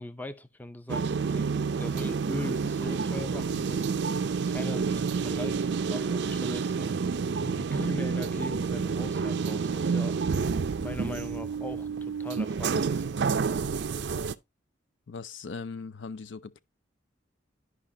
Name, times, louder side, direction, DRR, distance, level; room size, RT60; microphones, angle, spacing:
voice 1, 0.0-4.0 4.5-6.9 7.4-10.2 10.8-13.1, left 1 dB, 10° left, 0.4 m, -40 dB
sound 1, 0.9-14.3, right 5 dB, 60° right, 0.4 m, -29 dB
voice 2, 15.1-16.6, left 4 dB, 70° left, 0.5 m, -39 dB
12.5 x 5.2 x 2.7 m
head